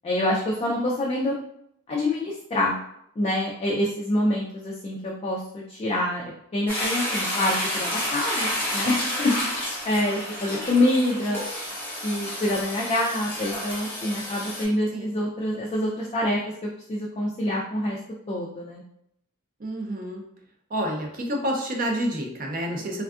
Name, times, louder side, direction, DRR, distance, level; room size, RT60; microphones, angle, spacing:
voice 1, 0.0-1.4 1.9-2.8 3.2-9.3 9.8-11.4 12.0-18.0 18.3-18.8, left 1 dB, 30° left, -3 dB, 0.3 m, -26 dB
Toilet flush, 6.7-14.6, left 1 dB, 10° left, 0.8 m, -30 dB
voice 2, 19.6-20.2 20.7-23.0, equal, 40° right, 1 dB, 0.5 m, -29 dB
3.4 x 2.3 x 2.4 m, 0.76 s
head